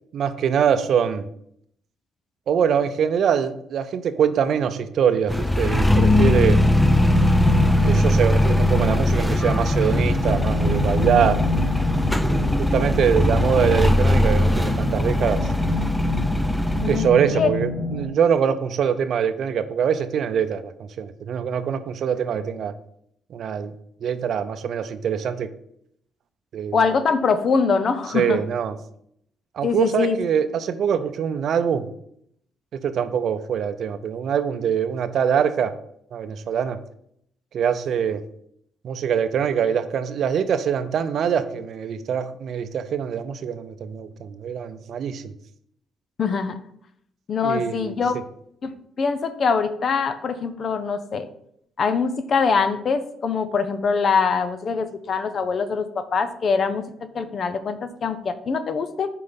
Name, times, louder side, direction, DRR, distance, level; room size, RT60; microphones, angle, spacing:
voice 1, 0.1-1.3 2.5-6.6 7.8-11.4 12.2-15.5 16.9-22.7 23.3-23.7 24.0-25.5 26.5-26.8 28.1-28.8 29.5-31.9 32.7-35.7 36.1-36.8 37.5-38.2 38.8-45.3 47.4-48.2, right 8 dB, 65° right, 11 dB, 0.5 m, -23 dB
sound 1, 5.3-17.1, left 1 dB, 5° left, 0.5 m, -20 dB
sound 2, 6.3-18.1, left 1 dB, 35° left, 2.3 m, -26 dB
voice 2, 16.8-17.5 26.7-28.4 29.6-30.2 46.2-46.6 47.3-48.2 48.6-48.7 49.0-51.3 51.8-56.8 57.1-59.1, left 5 dB, 50° left, 11 dB, 0.7 m, -23 dB
5.5 x 4.7 x 5.1 m, 0.72 s
cardioid pair, 90°, 0 cm